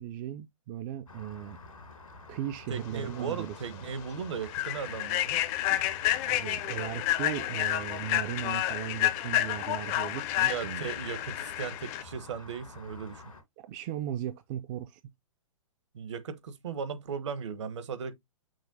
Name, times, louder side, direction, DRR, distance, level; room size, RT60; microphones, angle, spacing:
voice 1, 0.0-1.6 2.3-3.8 6.2-10.9 13.6-15.0, right 11 dB, 30° right, 0.4 m, -37 dB
Rain, 1.1-13.4, left 3 dB, 80° left, 1.9 m, -49 dB
voice 2, 2.7-5.4 10.5-13.2 15.9-18.1, right 6 dB, 60° right, 0.9 m, -37 dB
Human voice / Train, 3.2-3.3 3.7-3.9 4.4-12.0, left 14 dB, 30° left, 0.5 m, -30 dB
6.1 x 2.2 x 4.0 m
figure-of-eight pair, 120°, 17 cm